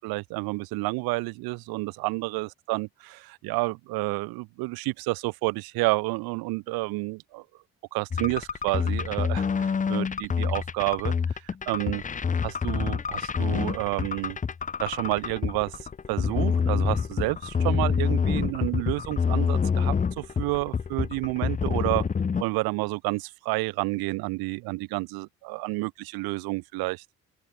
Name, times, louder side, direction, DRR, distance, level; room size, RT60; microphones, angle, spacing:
voice 1, 0.0-7.4 7.9-12.0 12.4-14.4 14.8-15.8 16.1-22.1 22.4-27.0, right 24 dB, 75° right, 0.8 m, -30 dB
sound 1, 8.1-22.4, left 6 dB, 20° left, 0.6 m, -27 dB
open air
hypercardioid pair, 55°, 37 cm